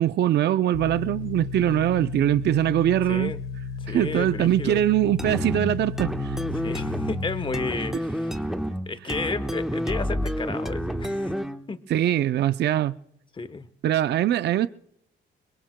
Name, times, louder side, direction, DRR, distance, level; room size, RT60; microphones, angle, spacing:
voice 1, 0.0-3.3 3.9-6.4 11.9-13.0 13.8-14.7, right 12 dB, 60° right, 0.5 m, -22 dB
sound 1, 0.7-7.6, left 6 dB, 85° left, 2.0 m, -34 dB
voice 2, 3.1-3.4 3.8-4.8 6.6-8.4 8.9-11.3 11.7-11.8 13.4-13.7, left 4 dB, 25° left, 1.0 m, -32 dB
sound 2, 5.2-11.7, equal, ahead, 1.2 m, -29 dB
25.0 x 21.5 x 2.2 m
cardioid pair, 90°, 20 cm